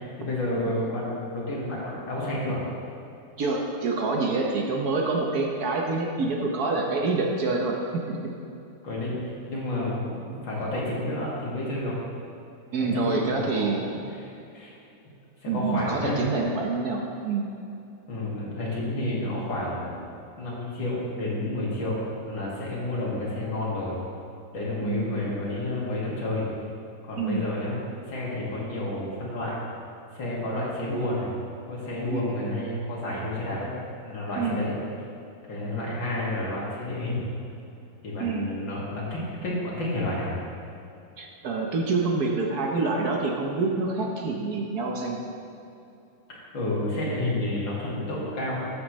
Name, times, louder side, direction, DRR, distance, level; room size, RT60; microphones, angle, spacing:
voice 1, 0.0-2.6 8.8-12.0 12.8-14.7 15.4-16.2 18.1-20.1 20.4-22.0 22.3-24.0 24.5-26.5 27.0-27.8 28.1-29.6 30.1-31.3 31.7-33.7 34.0-34.7 35.5-37.2 38.0-40.4 46.3-48.6, left 1 dB, 80° left, -6 dB, 2.8 m, -30 dB
voice 2, 3.4-8.3 12.7-13.8 15.5-17.5 24.8-25.3 27.2-27.4 32.1-32.2 34.4-34.6 38.2-38.5 41.2-45.2, right 3 dB, 60° right, 0 dB, 1.3 m, -27 dB
13.5 x 7.0 x 3.1 m, 2.7 s
omnidirectional pair, 2.1 m